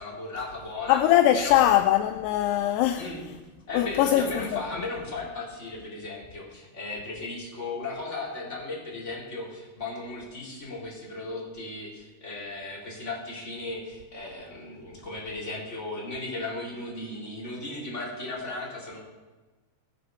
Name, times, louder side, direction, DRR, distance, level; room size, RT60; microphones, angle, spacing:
voice 1, 0.0-1.0 1.3-1.7 3.0-3.2 3.7-19.0, left 2 dB, 15° left, 3.8 m, -36 dB
voice 2, 0.9-3.3 3.7-4.5, left 12 dB, 80° left, 2.5 m, -22 dB
20.5 x 10.5 x 4.3 m
omnidirectional pair, 5.0 m